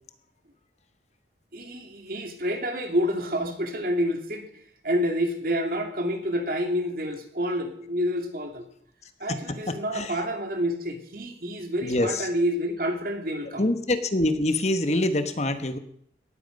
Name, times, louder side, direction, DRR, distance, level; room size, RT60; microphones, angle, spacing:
voice 1, 1.5-4.5 4.8-8.7 9.2-13.7, equal, 50° right, 5 dB, 2.8 m, -28 dB
voice 2, 9.7-10.2 11.8-12.3 13.6-15.8, left 1 dB, 35° left, 9 dB, 1.2 m, -25 dB
18.5 x 14.0 x 5.4 m, 0.67 s
head